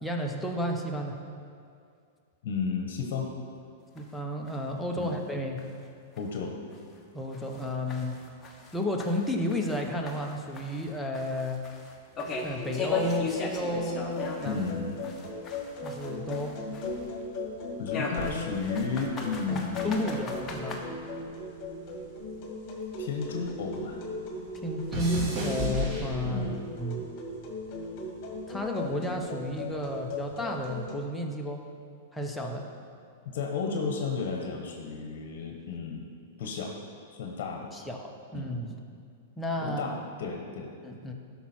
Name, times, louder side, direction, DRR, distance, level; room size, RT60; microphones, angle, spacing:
voice 1, 0.0-1.2 3.9-5.6 7.1-8.2 8.7-11.6 12.4-14.6 15.8-16.6 19.5-19.6 19.8-20.8 24.5-26.5 26.8-27.0 28.5-31.6 32.1-32.6 37.7-38.7 39.4-40.0 40.8-41.1, left 1 dB, 5° left, 0 dB, 1.0 m, -32 dB
voice 2, 2.4-3.3 4.9-5.1 6.2-6.6 14.4-15.0 17.8-19.9 23.0-24.0 26.2-26.6 33.2-36.1 36.4-36.7 37.1-37.7 38.3-38.5 39.6-40.7, left 5 dB, 60° left, 2 dB, 1.2 m, -33 dB
sound 1, 4.0-4.1 4.5-4.6 5.0-5.1 5.6-5.7 6.2-6.3 6.7-6.8 7.3-9.8 10.1-14.7 15.0-17.1 17.9-20.8, left 4 dB, 20° left, 1.2 m, -37 dB
sound 2, 12.3-30.9, left 2 dB, 40° left, 1.9 m, -38 dB
sound 3, 18.1-20.7 20.9-23.6 23.9-26.7 27.4-27.8, equal, 35° right, 2.1 m, -36 dB
12.0 x 5.9 x 4.4 m, 2.3 s
hypercardioid pair, 125°, 0 cm